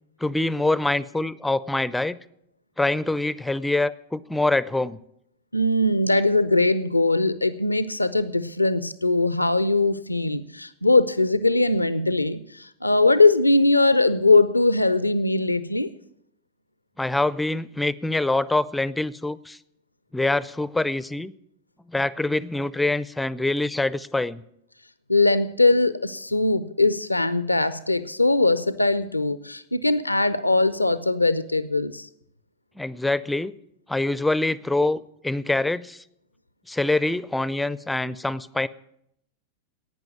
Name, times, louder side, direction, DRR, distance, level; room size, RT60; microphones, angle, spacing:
voice 1, 0.2-2.2 2.8-5.0 17.0-19.6 20.1-21.3 21.9-24.4 32.8-33.5 33.9-36.0 36.7-38.7, left 2 dB, 5° left, 19 dB, 0.5 m, -25 dB
voice 2, 5.5-15.9 25.1-32.1, left 2 dB, 85° left, 16 dB, 0.5 m, -21 dB
11.5 x 9.0 x 9.2 m, 0.77 s
figure-of-eight pair, 90°, 0 cm